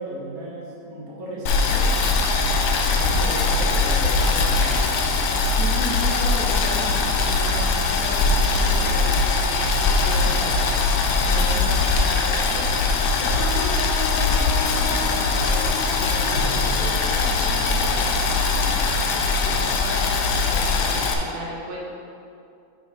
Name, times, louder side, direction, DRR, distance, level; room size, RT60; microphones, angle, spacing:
voice 1, 0.0-1.9 2.7-4.8 11.0-11.6, right 1 dB, 45° right, -5 dB, 1.2 m, -35 dB
Boiling, 1.5-21.1, left 4 dB, 90° left, 1.2 m, -21 dB
sound 1, 1.7-19.2, right 1 dB, 65° right, 1.7 m, -38 dB
voice 2, 5.6-21.8, right 1 dB, 85° right, -5 dB, 0.8 m, -35 dB
Wind instrument woodwind instrument, 13.3-17.4, left 6 dB, 70° left, 1.5 m, -35 dB
6.9 x 4.8 x 5.1 m, 2.6 s
omnidirectional pair, 3.3 m